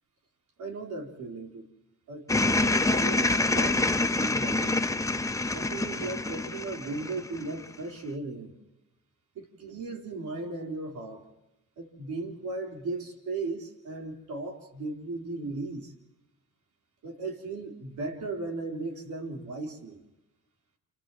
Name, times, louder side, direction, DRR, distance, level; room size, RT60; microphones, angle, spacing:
voice 1, 0.6-1.7 2.1-3.9 4.2-4.8 5.5-8.5 9.3-11.2 11.8-15.9 17.0-20.0, right 3 dB, 75° right, 1 dB, 4.1 m, -36 dB
sound 1, 2.3-7.7, left 2 dB, 10° left, 0.8 m, -26 dB
29.5 x 29.0 x 3.1 m, 0.96 s
cardioid pair, 90°, 30 cm